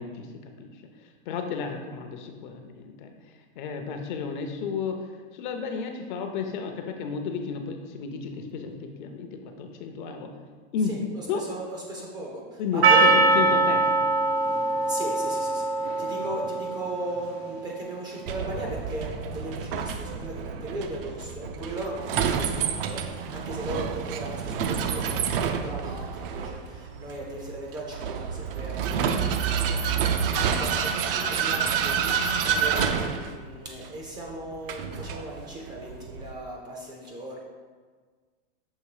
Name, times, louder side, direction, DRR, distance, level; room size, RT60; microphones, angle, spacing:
voice 1, 0.0-3.1 3.6-10.3 10.7-11.0 11.3-11.4 12.6-14.1 14.4-14.9, left 5 dB, 50° left, 5 dB, 0.7 m, -33 dB
voice 2, 10.9-13.1 14.9-29.8 30.1-37.4, right 1 dB, 15° right, -2 dB, 0.5 m, -37 dB
Percussion, 12.8-17.4, right 3 dB, 80° right, 0.8 m, -22 dB
Vehicle, 18.3-36.3, right 6 dB, 60° right, 0.5 m, -29 dB
6.6 x 3.0 x 4.8 m, 1.5 s
supercardioid pair, 165°, 32 cm